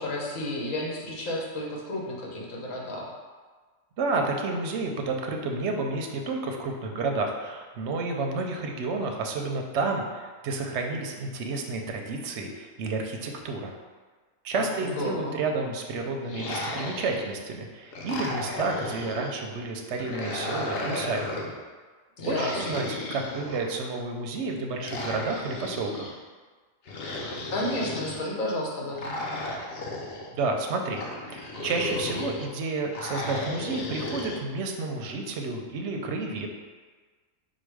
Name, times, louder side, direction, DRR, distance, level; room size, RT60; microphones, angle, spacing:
voice 1, 0.0-3.1 14.5-15.4 22.2-22.8 27.5-29.2, left 1 dB, 80° left, -3 dB, 1.3 m, -32 dB
voice 2, 4.0-13.7 14.4-21.3 22.3-26.1 30.3-31.0 31.3-36.5, right 3 dB, 65° right, 2 dB, 0.8 m, -30 dB
sound 1, 16.2-17.4 17.9-19.3 19.9-21.6 22.2-23.9 24.8-26.1 26.9-28.2 29.0-30.3 30.9-32.5 32.9-34.4, left 2 dB, 55° left, 0.8 m, -34 dB
4.7 x 2.3 x 4.7 m, 1.4 s
omnidirectional pair, 1.4 m